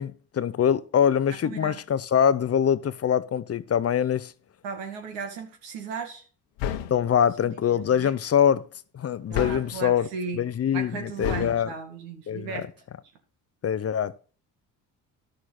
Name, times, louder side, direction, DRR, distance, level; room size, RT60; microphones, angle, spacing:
voice 1, 0.0-4.3 6.9-8.7 8.9-10.1 10.3-11.7 12.3-12.6 13.6-14.1, left 8 dB, 35° left, 0.6 m, -24 dB
voice 2, 1.4-1.8 4.6-6.2 7.4-8.1 9.3-10.4 10.7-12.7, right 5 dB, 85° right, 2.2 m, -36 dB
sound 1, 6.6-7.1 9.3-9.8 11.2-11.6, left 10 dB, 75° left, 1.2 m, -30 dB
11.5 x 6.5 x 4.2 m
supercardioid pair, 75°, 42 cm